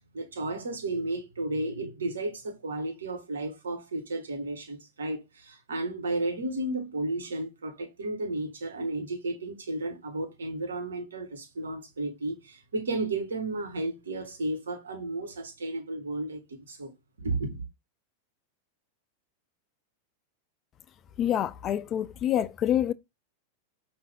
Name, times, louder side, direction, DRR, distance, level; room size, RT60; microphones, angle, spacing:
voice 1, 0.1-16.9 17.2-17.6, right 2 dB, 70° right, 1.6 m, -33 dB
voice 2, 21.2-22.9, left 10 dB, 30° left, 0.4 m, -27 dB
5.3 x 2.6 x 3.6 m
figure-of-eight pair, 90°, 0 cm